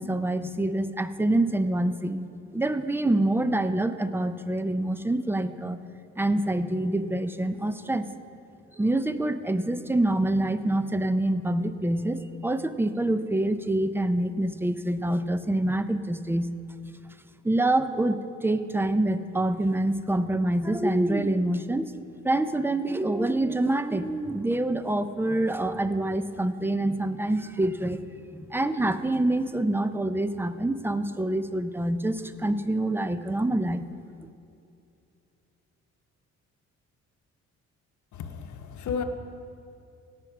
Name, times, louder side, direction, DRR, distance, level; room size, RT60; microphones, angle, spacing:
voice 1, 0.0-2.2 2.5-5.8 6.2-8.1 8.8-16.5 17.4-21.9 22.2-28.0 28.3-33.9, right 1 dB, 5° right, 11 dB, 0.5 m, -26 dB
voice 2, 38.1-39.0, left 6 dB, 70° left, 6 dB, 0.9 m, -33 dB
17.0 x 6.0 x 5.9 m, 2.6 s
cardioid pair, 90°, 30 cm